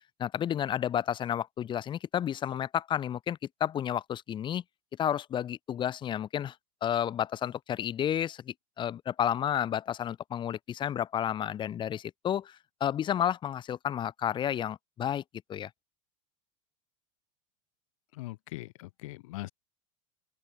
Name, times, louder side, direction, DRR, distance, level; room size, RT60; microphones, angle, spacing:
voice 1, 0.2-4.6 5.0-6.5 6.8-15.2 15.5-15.7, left 10 dB, 30° left, 2.8 m, -31 dB
voice 2, 18.1-19.5, left 20 dB, 75° left, 2.8 m, -41 dB
supercardioid pair, 145°, 17 cm